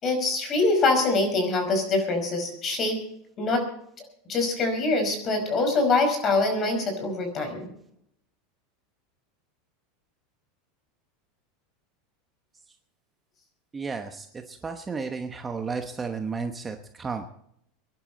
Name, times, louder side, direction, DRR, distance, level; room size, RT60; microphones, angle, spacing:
voice 1, 0.0-3.0 3.4-3.6 4.3-7.7, left 3 dB, 30° left, 5 dB, 5.3 m, -24 dB
voice 2, 13.7-17.3, right 5 dB, 15° right, 5 dB, 1.0 m, -33 dB
24.0 x 11.0 x 4.2 m, 0.72 s
supercardioid pair, 150°, 0 cm